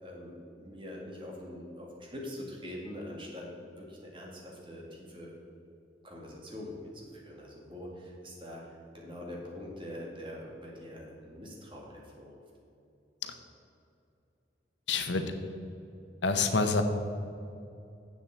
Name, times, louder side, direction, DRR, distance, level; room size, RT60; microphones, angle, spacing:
voice 1, 0.0-5.4 6.0-12.4, left 1 dB, 30° right, -2 dB, 2.0 m, -44 dB
voice 2, 14.9-15.2 16.2-16.8, left 4 dB, 85° left, 7 dB, 0.8 m, -27 dB
7.6 x 7.1 x 7.5 m, 2.7 s
head